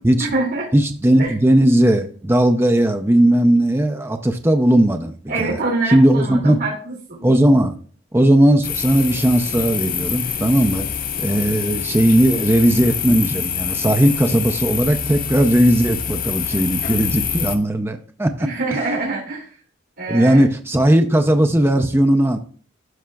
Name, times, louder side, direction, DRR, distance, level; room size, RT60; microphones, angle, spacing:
voice 1, 0.2-0.7 1.2-1.3 5.3-7.3 16.5-16.7 18.4-19.6 20.0-20.4, right 3 dB, 70° right, -4 dB, 2.5 m, -25 dB
voice 2, 0.7-5.6 5.9-6.6 7.2-7.7 8.1-10.9 11.2-18.5 20.1-22.4, right 1 dB, 10° right, 6 dB, 0.5 m, -17 dB
sound 1, 8.6-17.6, left 7 dB, 45° left, 0.6 m, -26 dB
12.5 x 5.5 x 2.3 m, 0.43 s
head